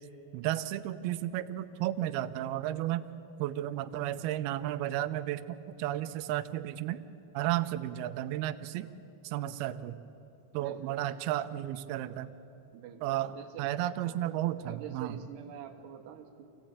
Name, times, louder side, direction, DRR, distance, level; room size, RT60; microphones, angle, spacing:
voice 1, 0.3-3.1 3.4-7.0 7.3-8.9 9.2-10.0 10.5-12.3 13.0-13.3 13.6-15.2, right 13 dB, 90° right, 10 dB, 2.2 m, -33 dB
voice 2, 10.6-11.2 12.7-14.2 14.6-16.5, right 9 dB, 70° right, 4 dB, 3.1 m, -47 dB
25.5 x 16.5 x 8.8 m, 2.9 s
omnidirectional pair, 5.3 m